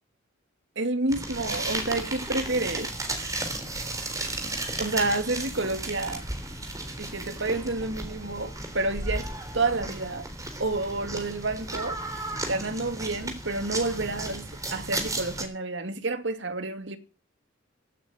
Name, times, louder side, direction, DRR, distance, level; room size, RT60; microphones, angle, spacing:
voice 1, 0.8-2.9 4.8-6.2 7.0-9.3 9.5-10.3 10.6-12.0 12.5-17.0, right 2 dB, 65° right, 2.6 m, -29 dB
sound 1, 1.1-15.4, right 2 dB, 15° right, 3.8 m, -34 dB
16.0 x 9.2 x 9.2 m
head